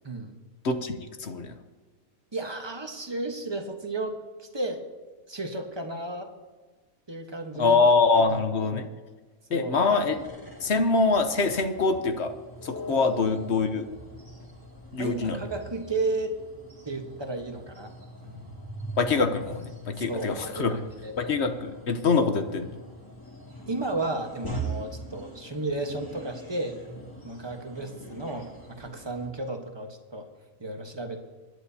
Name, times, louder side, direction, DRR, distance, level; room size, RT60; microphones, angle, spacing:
voice 1, 0.0-0.4 2.3-4.8 5.3-6.3 7.1-7.8 8.3-8.4 9.5-9.8 12.9-13.0 15.0-16.4 16.8-17.9 18.2-18.5 20.1-20.8 21.0-21.3 23.7-26.8 27.2-30.3 30.6-31.2, right 2 dB, 20° right, 4 dB, 1.1 m, -33 dB
voice 2, 0.6-1.5 7.6-8.9 9.5-10.1 10.6-12.3 12.6-13.9 14.9-15.4 19.0-20.7 21.2-22.7, left 4 dB, 55° left, 7 dB, 1.0 m, -24 dB
sound 1, 9.9-29.3, right 1 dB, 15° left, 2.2 m, -42 dB
22.5 x 11.0 x 2.8 m, 1.3 s
omnidirectional pair, 1.5 m